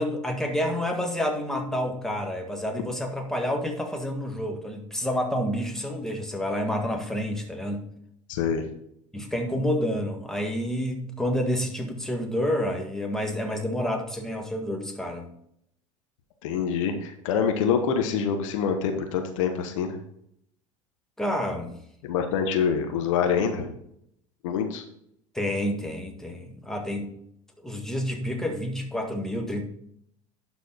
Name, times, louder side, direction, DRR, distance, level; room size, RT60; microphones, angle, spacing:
voice 1, 0.0-7.8 9.1-15.3 21.2-21.7 25.3-27.1 27.6-29.6, equal, 5° left, 2 dB, 1.7 m, -29 dB
voice 2, 8.3-8.6 16.4-20.0 22.0-23.7 24.4-24.8, left 7 dB, 70° left, 6 dB, 1.1 m, -25 dB
11.5 x 4.2 x 4.0 m, 0.72 s
hypercardioid pair, 75°, 17 cm